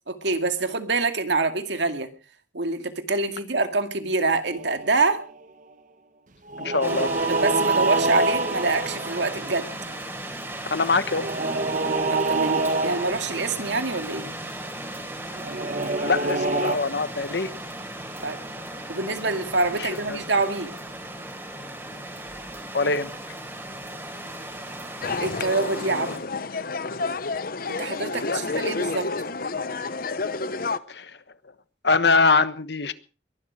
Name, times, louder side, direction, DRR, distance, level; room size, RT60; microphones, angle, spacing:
voice 1, 0.1-2.1 2.5-5.2 7.3-9.7 12.1-14.3 18.2-18.4 18.9-20.7 25.2-26.2 27.7-29.1, right 3 dB, 80° right, 2.1 m, -26 dB
sound 1, 4.4-5.3 6.5-10.0 11.0-13.5 15.4-16.8, right 2 dB, 45° right, 1.1 m, -26 dB
voice 2, 6.6-7.2 10.7-11.3 16.0-17.5 19.8-20.2 22.7-23.1 28.2-28.7 30.9-31.2 31.8-32.9, left 4 dB, 70° left, 1.2 m, -23 dB
sound 2, 6.8-26.2, right 1 dB, 15° right, 3.7 m, -36 dB
sound 3, 25.0-30.8, left 3 dB, 55° left, 0.9 m, -30 dB
22.0 x 12.0 x 5.0 m
head